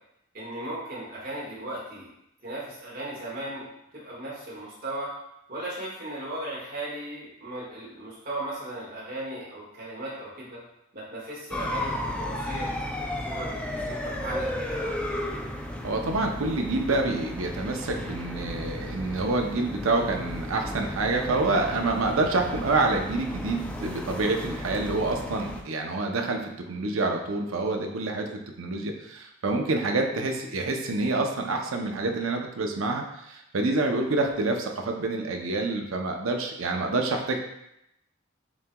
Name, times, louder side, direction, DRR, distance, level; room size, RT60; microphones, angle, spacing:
voice 1, 0.3-2.1 2.4-3.7 3.9-5.1 5.5-10.6 10.9-12.9 13.2-15.0, right 1 dB, 45° right, -6 dB, 1.6 m, -36 dB
sound 1, 11.5-25.6, left 1 dB, 5° left, 0.3 m, -34 dB
voice 2, 15.8-26.4 26.7-37.4, right 2 dB, 70° right, 3 dB, 0.6 m, -27 dB
6.9 x 2.9 x 2.2 m, 0.82 s
head